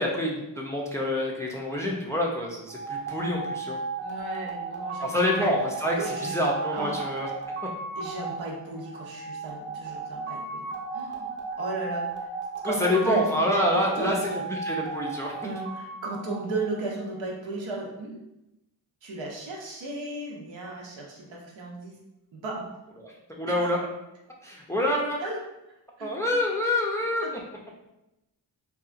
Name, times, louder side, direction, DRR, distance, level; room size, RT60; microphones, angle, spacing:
voice 1, 0.0-3.8 5.0-6.0 6.2-7.3 12.6-14.2 14.5-15.4 23.0-23.8 24.4-25.2 26.0-27.2, left 1 dB, 5° left, -2 dB, 0.5 m, -27 dB
sound 1, 2.7-17.1, right 3 dB, 25° right, 0.8 m, -35 dB
voice 2, 4.0-5.5 6.0-6.4 6.7-7.1 8.0-12.1 12.6-13.3 13.7-14.5 15.4-18.2 19.0-22.0 22.3-22.7 23.4-23.6 25.2-25.4 26.0-26.1 27.2-27.3, right 2 dB, 70° right, -1 dB, 0.8 m, -35 dB
2.7 x 2.3 x 2.5 m, 0.91 s
cardioid pair, 50°, 47 cm